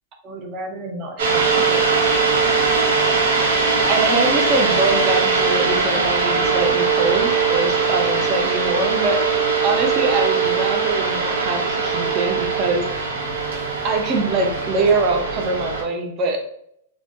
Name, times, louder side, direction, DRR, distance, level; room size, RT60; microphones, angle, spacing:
voice 1, 0.2-2.0 3.9-12.9 13.8-16.5, right 3 dB, 20° right, 3 dB, 0.4 m, -24 dB
sound 1, 1.2-15.8, right 5 dB, 90° right, 0.8 m, -20 dB
2.5 x 2.1 x 2.4 m, 0.69 s
supercardioid pair, 175°, 0 cm